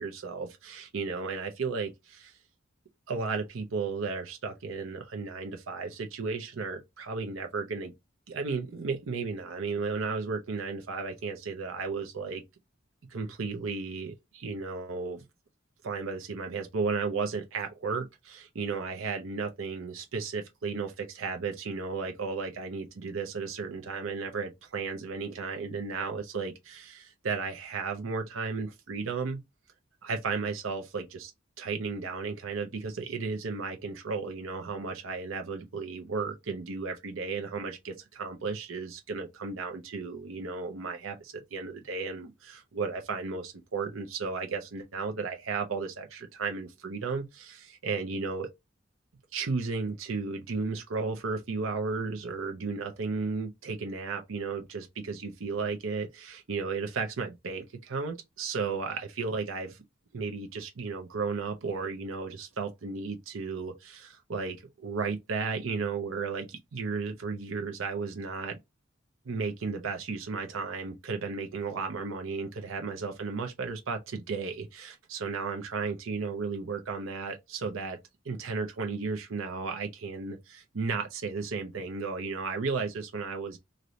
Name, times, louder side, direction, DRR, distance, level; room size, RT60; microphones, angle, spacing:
voice 1, 0.0-2.3 3.1-7.9 8.3-12.4 13.1-15.2 15.8-29.4 30.0-31.3 31.6-48.5 49.3-59.8 60.1-68.6 69.3-78.0 78.2-83.6, right 4 dB, 80° right, 0.6 m, -34 dB
3.1 x 2.6 x 2.6 m
head